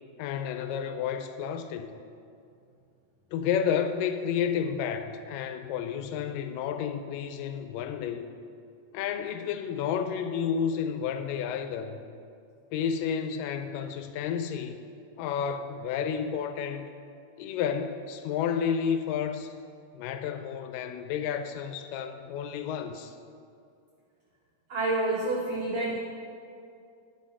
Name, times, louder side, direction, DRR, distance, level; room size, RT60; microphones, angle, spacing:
voice 1, 0.2-1.9 3.3-8.3 8.9-12.0 12.7-14.7 15.2-16.9 17.4-19.5 19.9-23.2, left 7 dB, 85° left, 8 dB, 2.2 m, -31 dB
voice 2, 24.7-26.0, right 2 dB, 80° right, -2 dB, 1.3 m, -28 dB
10.0 x 6.3 x 5.5 m, 2.4 s
omnidirectional pair, 3.9 m